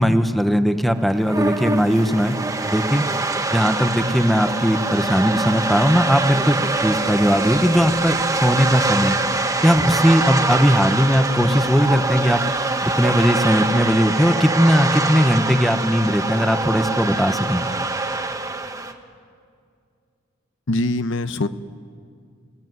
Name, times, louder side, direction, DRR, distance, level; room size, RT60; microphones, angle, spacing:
voice 1, 0.0-2.4 2.6-3.0 3.5-9.2 9.6-12.4 12.8-17.6, equal, ahead, 8 dB, 1.0 m, -18 dB
sound 1, 1.0-18.9, right 2 dB, 15° right, 1.4 m, -24 dB
voice 2, 20.7-21.5, left 2 dB, 65° left, 11 dB, 0.9 m, -22 dB
29.0 x 18.0 x 9.5 m, 2.3 s
head